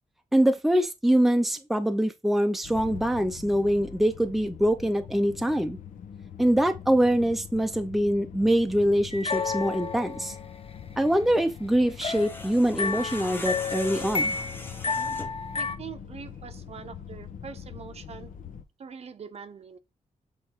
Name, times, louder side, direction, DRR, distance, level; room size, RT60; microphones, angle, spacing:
voice 1, 0.3-5.8 6.4-10.3 11.0-14.4, equal, ahead, 0.6 m, -24 dB
sound 1, 2.6-18.6, left 8 dB, 85° left, 1.1 m, -43 dB
sound 2, 9.1-10.6 12.0-15.8, left 4 dB, 45° left, 0.8 m, -31 dB
sound 3, 11.9-15.5, left 2 dB, 15° left, 1.0 m, -41 dB
voice 2, 15.5-18.3 18.8-19.8, right 6 dB, 50° right, 0.7 m, -43 dB
7.6 x 3.4 x 4.4 m
wide cardioid pair, 175°, 14 cm